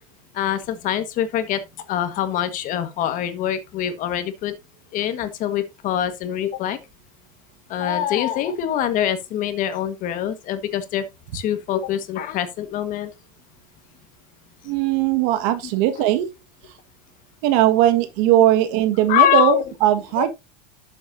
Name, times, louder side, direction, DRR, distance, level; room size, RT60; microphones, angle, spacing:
voice 1, 0.3-1.6 1.9-4.5 4.9-6.8 7.7-11.0 11.3-13.1 18.3-18.4 19.1-19.6 20.2-20.3, left 11 dB, 50° left, 1.6 m, -24 dB
voice 2, 14.6-16.3 17.4-20.3, right 12 dB, 70° right, 1.7 m, -19 dB
11.5 x 7.2 x 2.7 m
supercardioid pair, 115°, 18 cm